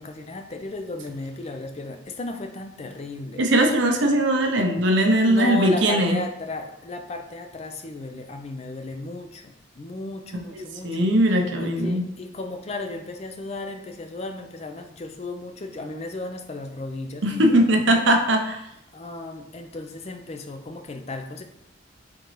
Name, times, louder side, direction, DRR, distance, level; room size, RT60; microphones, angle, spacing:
voice 1, 0.0-3.4 5.2-11.0 11.6-18.0 18.9-21.4, left 2 dB, 30° left, 5 dB, 0.4 m, -35 dB
voice 2, 3.4-6.2 10.8-12.0 17.2-18.6, right 1 dB, 60° right, 4 dB, 0.6 m, -20 dB
4.4 x 3.8 x 3.1 m, 0.79 s
head